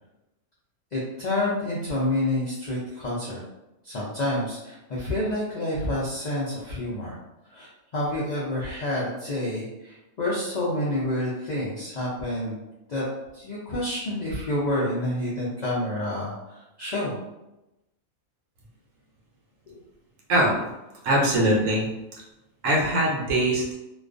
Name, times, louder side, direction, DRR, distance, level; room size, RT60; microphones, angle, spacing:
voice 1, 0.9-3.4 3.8-7.2 7.5-12.6 12.9-13.0 13.3-17.2 19.7-19.8, left 1 dB, 80° left, -6 dB, 0.4 m, -28 dB
voice 2, 21.0-21.9 22.6-23.7, right 1 dB, 70° right, -2 dB, 0.9 m, -22 dB
2.3 x 2.3 x 2.4 m, 0.95 s
omnidirectional pair, 1.4 m